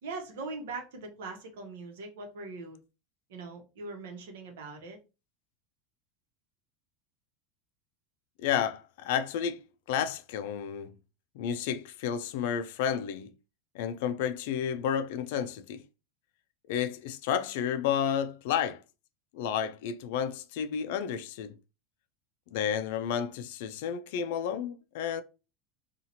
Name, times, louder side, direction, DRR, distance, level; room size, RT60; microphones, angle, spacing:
voice 1, 0.0-2.8 3.3-5.0, right 3 dB, 85° right, 1.0 m, -41 dB
voice 2, 8.4-10.9 11.4-13.3 13.7-15.8 16.7-18.8 19.3-21.6 22.5-25.2, left 8 dB, 60° left, 0.3 m, -31 dB
2.7 x 2.4 x 2.8 m
supercardioid pair, 175°, 0 cm